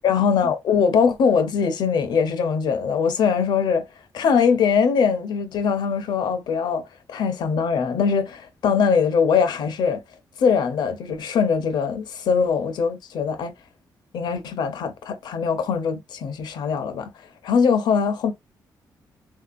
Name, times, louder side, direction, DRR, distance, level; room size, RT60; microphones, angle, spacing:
voice 1, 0.0-3.8 4.1-6.8 7.1-10.0 10.4-13.5 14.1-17.1 17.4-18.3, left 6 dB, 80° left, 0.7 m, -21 dB
3.1 x 2.7 x 2.4 m
cardioid pair, 105°, 7 cm